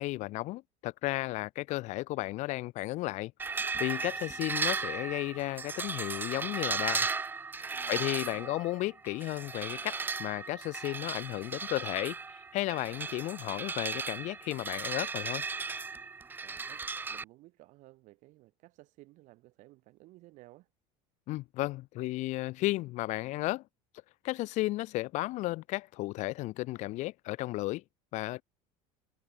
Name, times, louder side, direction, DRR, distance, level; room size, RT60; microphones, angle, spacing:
voice 1, 0.0-3.3 3.8-7.1 7.9-12.1 12.5-15.4 21.3-23.6 24.2-27.8 28.1-28.4, left 19 dB, 50° left, 1.4 m, -34 dB
sound 1, 3.4-17.2, right 4 dB, 15° right, 0.7 m, -36 dB
voice 2, 7.7-8.6 16.4-20.7, right 19 dB, 55° right, 4.9 m, -57 dB
cardioid pair, 155°, 15 cm